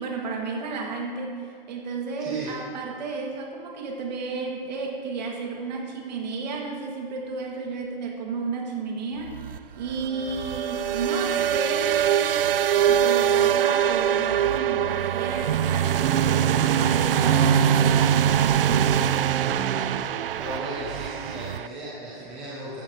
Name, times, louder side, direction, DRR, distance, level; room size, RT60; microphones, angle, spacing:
voice 1, 0.0-1.4 1.7-9.4 9.8-12.3 12.7-19.2, right 4 dB, 45° right, 1 dB, 2.0 m, -32 dB
voice 2, 2.2-2.5 20.4-22.8, right 2 dB, 5° right, -9 dB, 0.4 m, -35 dB
sound 1, 9.2-21.7, right 10 dB, 70° right, 0.4 m, -24 dB
sound 2, 15.4-20.0, right 8 dB, 85° right, 0.9 m, -23 dB
15.5 x 10.5 x 3.0 m, 2.4 s
hypercardioid pair, 165°, 30 cm